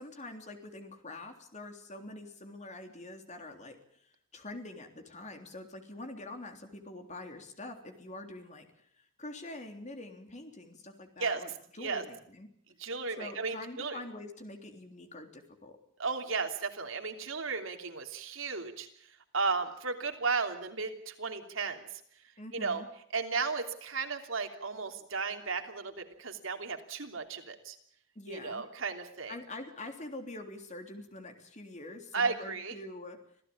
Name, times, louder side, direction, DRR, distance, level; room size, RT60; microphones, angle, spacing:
voice 1, 0.0-11.5 11.8-12.5 13.2-15.8 22.4-22.9 28.2-28.6 29.3-33.2, left 2 dB, 35° left, 5 dB, 3.5 m, -45 dB
voice 2, 12.8-14.0 16.0-18.9 19.3-22.0 22.5-22.8 23.1-27.8 28.3-29.3 32.1-32.8, right 4 dB, 80° right, 5 dB, 3.1 m, -34 dB
26.5 x 16.0 x 8.8 m, 0.66 s
head